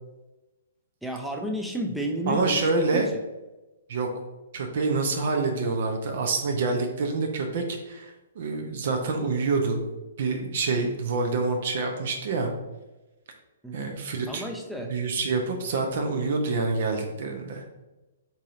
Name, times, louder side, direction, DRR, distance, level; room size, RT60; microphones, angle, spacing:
voice 1, 1.0-3.0 13.6-13.9 14.3-14.9, right 1 dB, ahead, 2 dB, 0.5 m, -32 dB
voice 2, 2.3-3.1 3.9-4.1 4.5-9.8 10.2-12.5 13.7-14.4 14.9-17.6, right 3 dB, 50° right, 4 dB, 0.6 m, -27 dB
4.1 x 3.8 x 2.5 m, 1.1 s
figure-of-eight pair, 120°, 0 cm